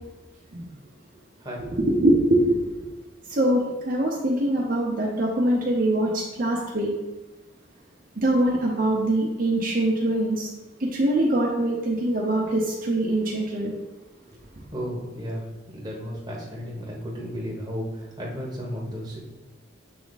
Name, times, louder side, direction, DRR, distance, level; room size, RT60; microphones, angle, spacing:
voice 1, 1.6-2.9 3.3-6.9 8.2-10.5 10.9-13.7, right 1 dB, 45° right, -4 dB, 0.8 m, -23 dB
voice 2, 14.7-15.5 15.7-19.2, equal, 20° right, -3 dB, 1.2 m, -33 dB
6.8 x 3.5 x 4.0 m, 1.1 s
head